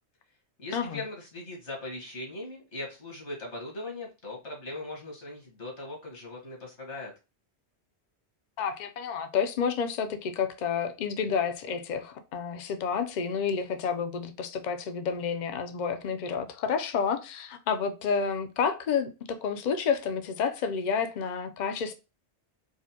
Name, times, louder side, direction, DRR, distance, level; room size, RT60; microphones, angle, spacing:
voice 1, 0.6-7.1, left 2 dB, 75° left, 1.8 m, -39 dB
voice 2, 8.6-21.9, left 6 dB, 50° left, 0.6 m, -30 dB
4.7 x 2.1 x 2.7 m
omnidirectional pair, 1.2 m